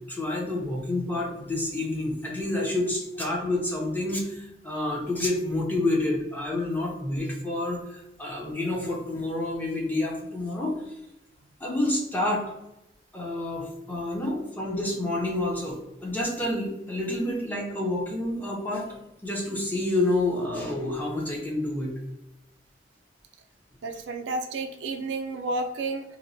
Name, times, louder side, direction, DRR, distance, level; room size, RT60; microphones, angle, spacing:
voice 1, 0.1-11.0 11.6-12.4 13.1-21.9, left 2 dB, 10° left, -2 dB, 0.5 m, -29 dB
voice 2, 23.8-26.2, right 2 dB, 90° right, 5 dB, 0.4 m, -31 dB
2.9 x 2.0 x 2.5 m, 0.91 s
head